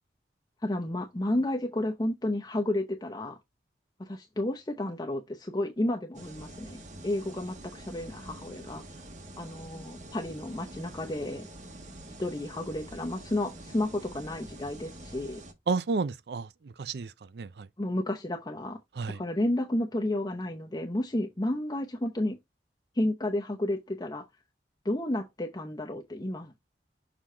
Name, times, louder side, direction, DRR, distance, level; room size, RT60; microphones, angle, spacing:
voice 1, 0.6-3.4 4.0-8.8 9.4-11.5 12.2-15.4 17.8-18.8 19.1-22.4 22.9-24.2 24.8-26.5, left 1 dB, 25° left, 0.7 m, -31 dB
sound 1, 6.1-15.5, right 1 dB, 45° right, 1.3 m, -46 dB
voice 2, 15.7-17.7 19.0-19.2, right 4 dB, 65° right, 0.5 m, -32 dB
6.6 x 3.8 x 4.4 m
head